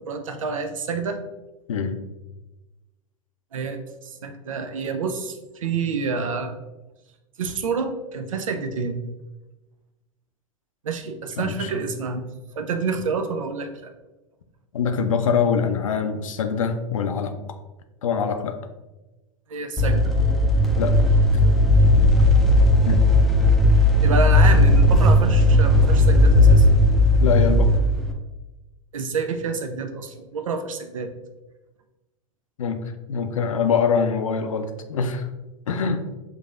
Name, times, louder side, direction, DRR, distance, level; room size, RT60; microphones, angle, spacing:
voice 1, 0.1-1.2 3.5-6.5 7.4-9.0 10.8-12.2 12.6-13.9 19.5-20.0 24.0-26.7 28.9-31.1, right 4 dB, 75° right, 7 dB, 0.5 m, -28 dB
voice 2, 11.4-11.9 14.7-17.3 18.0-18.6 20.8-21.0 22.9-23.0 27.2-27.7 32.6-35.3 35.7-36.0, left 6 dB, 75° left, 8 dB, 0.5 m, -24 dB
sound 1, 19.8-28.1, left 1 dB, ahead, 0.5 m, -16 dB
5.9 x 2.6 x 2.5 m, 1.1 s
hypercardioid pair, 95°, 17 cm